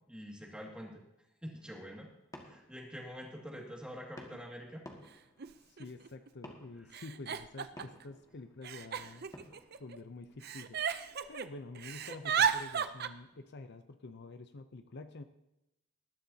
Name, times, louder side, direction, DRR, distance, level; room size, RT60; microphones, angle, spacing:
voice 1, 0.1-1.0 1.4-2.1 2.4-4.8, equal, 5° right, -1 dB, 2.1 m, -46 dB
sound 1, 1.6-13.7, left 1 dB, 20° left, 1.7 m, -58 dB
Giggle, 4.3-4.4 5.4-5.5 5.8-6.3 6.9-8.0 8.6-10.0 10.4-11.5 11.7-13.1, right 8 dB, 55° right, 0.6 m, -34 dB
voice 2, 5.7-9.3 9.8-10.8 11.3-15.2, left 3 dB, 60° left, 9 dB, 0.6 m, -48 dB
19.5 x 11.5 x 2.8 m, 0.89 s
head